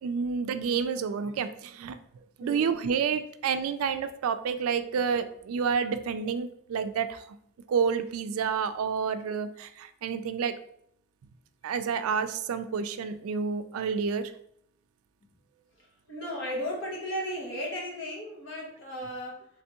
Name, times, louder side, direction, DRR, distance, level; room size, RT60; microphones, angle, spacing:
voice 1, 0.0-2.0 2.4-7.2 7.7-10.5 11.6-14.3, right 6 dB, 85° right, 10 dB, 0.3 m, -29 dB
voice 2, 2.4-2.7 15.8-19.5, equal, 55° left, -3 dB, 1.1 m, -35 dB
3.3 x 3.3 x 2.8 m, 0.70 s
head